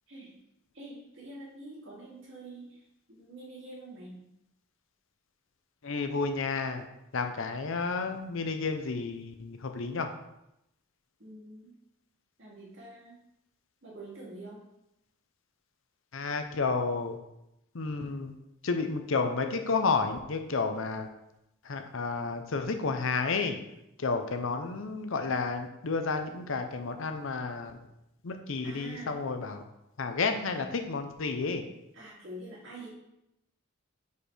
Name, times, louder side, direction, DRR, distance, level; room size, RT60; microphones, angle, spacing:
voice 1, 0.7-4.2 11.2-11.7 12.4-13.2 13.8-14.7 28.6-29.1 31.9-32.9, right 1 dB, 60° right, -5 dB, 2.3 m, -46 dB
voice 2, 5.8-6.9 7.1-10.1 16.1-17.2 17.7-18.3 18.6-21.1 21.6-23.6 24.0-27.8 28.2-29.6 30.0-31.7, left 4 dB, 65° left, 6 dB, 0.6 m, -31 dB
5.2 x 4.5 x 4.9 m, 0.85 s
head